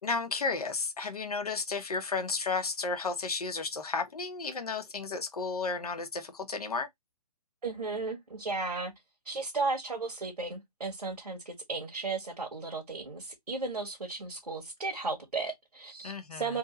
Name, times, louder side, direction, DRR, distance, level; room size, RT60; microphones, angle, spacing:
voice 1, 0.0-6.9 16.0-16.6, left 4 dB, 70° left, 1.1 m, -33 dB
voice 2, 7.6-8.9 9.2-16.6, right 3 dB, 80° right, 1.5 m, -35 dB
3.5 x 2.7 x 3.9 m
figure-of-eight pair, 135°, 20 cm